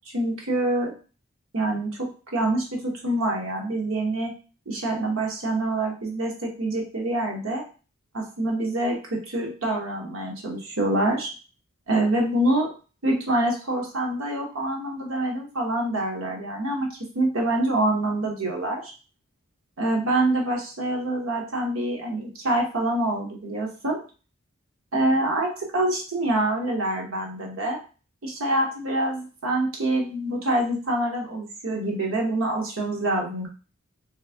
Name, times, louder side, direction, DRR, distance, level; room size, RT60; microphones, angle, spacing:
voice 1, 0.1-0.9 1.5-4.3 4.7-7.6 8.1-11.3 11.9-12.7 13.0-18.9 19.8-24.0 24.9-27.8 28.2-33.5, right 1 dB, 75° right, 0 dB, 1.1 m, -26 dB
3.4 x 3.2 x 3.4 m, 0.35 s
head